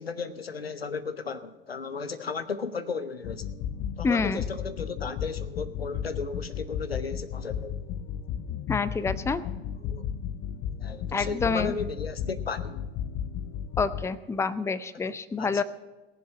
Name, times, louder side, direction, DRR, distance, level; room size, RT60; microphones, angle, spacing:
voice 1, 0.0-3.5 4.0-7.8 9.8-10.1 10.8-12.8 15.4-15.6, left 5 dB, 90° left, 0.6 m, -35 dB
sound 1, 3.2-14.1, left 8 dB, 45° left, 0.7 m, -34 dB
voice 2, 4.0-4.4 8.7-9.4 11.1-11.7 13.8-15.6, left 4 dB, 10° left, 0.5 m, -27 dB
18.5 x 7.4 x 6.3 m
figure-of-eight pair, 65°, 29 cm